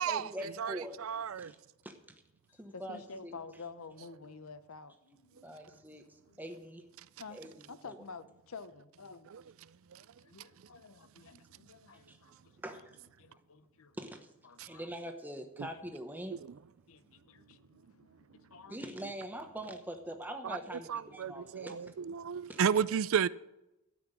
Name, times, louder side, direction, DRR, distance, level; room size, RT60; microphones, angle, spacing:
voice 1, 0.0-1.0 1.4-1.6 1.8-2.0 2.6-3.3 5.4-6.0 6.4-6.8 7.3-7.5 7.8-8.0 12.1-12.2 12.6-12.9 14.0-14.3 14.6-16.4 18.7-21.8 22.5-22.6, equal, 10° right, 1.0 m, -43 dB
voice 2, 0.6-1.5 9.9-10.0 14.6-14.7 15.6-15.7 20.4-20.6 20.9-23.3, right 7 dB, 70° right, 0.4 m, -32 dB
voice 3, 2.5-5.7 6.3-6.4 7.2-7.4 7.7-9.3 10.0-12.8 13.2-13.9 14.4-14.9 16.9-19.0, left 4 dB, 75° left, 0.7 m, -50 dB
13.0 x 6.1 x 9.0 m
head